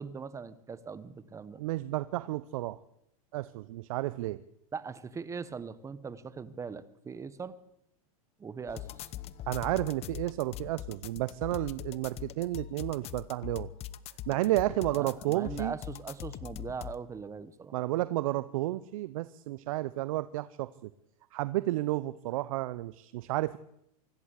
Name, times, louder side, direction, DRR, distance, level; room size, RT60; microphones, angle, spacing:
voice 1, 0.0-1.6 4.7-7.5 8.4-8.9 15.0-17.7, right 5 dB, 15° right, 16 dB, 1.4 m, -40 dB
voice 2, 1.6-2.8 3.3-4.4 9.5-13.7 14.3-15.7 17.7-20.9 21.3-23.6, right 16 dB, 65° right, 16 dB, 0.9 m, -32 dB
sound 1, 8.7-17.0, left 12 dB, 35° left, 1.0 m, -42 dB
25.0 x 15.0 x 8.4 m, 0.79 s
hypercardioid pair, 125°, 19 cm